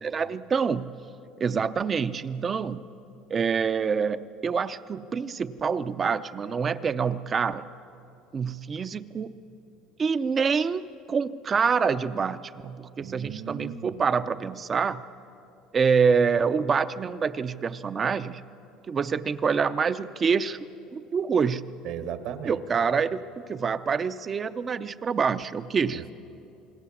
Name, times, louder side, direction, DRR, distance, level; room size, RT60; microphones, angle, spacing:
voice 1, 0.0-0.9 1.4-2.8 3.3-7.7 8.3-9.3 10.0-10.8 11.1-15.0 15.7-18.4 18.9-20.6 20.9-21.7 22.4-26.0, right 6 dB, 25° right, 13 dB, 0.6 m, -26 dB
voice 2, 13.0-14.0 21.8-22.6 25.9-26.1, right 9 dB, 55° right, 10 dB, 1.4 m, -36 dB
28.0 x 19.5 x 7.2 m, 2.8 s
cardioid pair, 145°, 0 cm